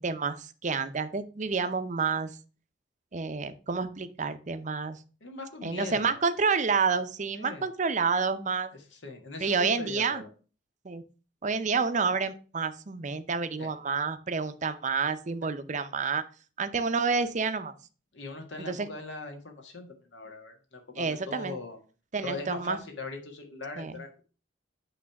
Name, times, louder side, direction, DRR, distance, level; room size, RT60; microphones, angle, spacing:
voice 1, 0.0-2.3 3.1-5.0 5.6-8.7 9.4-10.2 10.8-11.0 11.4-16.2 16.6-17.7 18.7-18.9 21.0-21.6 22.1-22.8 23.8-23.9, right 5 dB, 40° right, 11 dB, 0.6 m, -29 dB
voice 2, 5.2-6.2 7.3-7.7 8.7-10.3 13.6-13.7 18.1-21.8 22.2-24.2, left 3 dB, 75° left, 3 dB, 1.7 m, -40 dB
8.6 x 3.3 x 5.8 m, 0.36 s
head